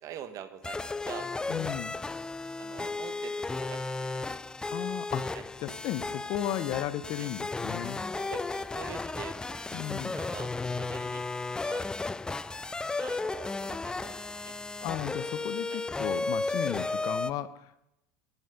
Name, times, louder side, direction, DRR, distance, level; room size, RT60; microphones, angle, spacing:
voice 1, 0.0-1.7 2.6-3.8 4.1-4.2 5.3-5.4 7.2-7.3 8.2-9.8 10.1-11.2 11.6-11.9 13.0-14.6 15.0-15.2 15.7-15.8 16.8-17.0, right 9 dB, 50° right, 10 dB, 1.4 m, -45 dB
sound 1, 0.6-17.3, left 3 dB, 10° left, 0.3 m, -34 dB
voice 2, 1.5-1.9 4.7-5.3 5.6-8.0 9.7-10.1 14.8-17.8, left 12 dB, 55° left, 14 dB, 0.7 m, -35 dB
11.0 x 11.0 x 5.2 m, 0.86 s
hypercardioid pair, 90°, 7 cm